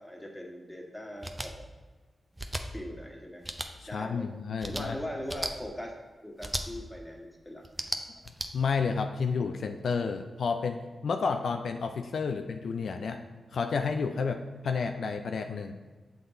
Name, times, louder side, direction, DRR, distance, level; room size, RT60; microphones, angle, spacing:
voice 1, 0.0-1.7 2.5-3.4 3.9-4.3 4.6-5.9 6.2-7.6, equal, 10° left, -1 dB, 1.5 m, -40 dB
sound 1, 1.2-1.5 2.4-2.6 3.4-3.7 4.6-4.8 5.3-5.5 6.4-6.6 7.6-8.5, right 1 dB, 15° right, 0.6 m, -34 dB
voice 2, 3.8-4.9 8.5-13.2 13.5-15.7, left 5 dB, 75° left, 6 dB, 0.3 m, -31 dB
6.7 x 4.0 x 4.1 m, 1.4 s
supercardioid pair, 40°, 0 cm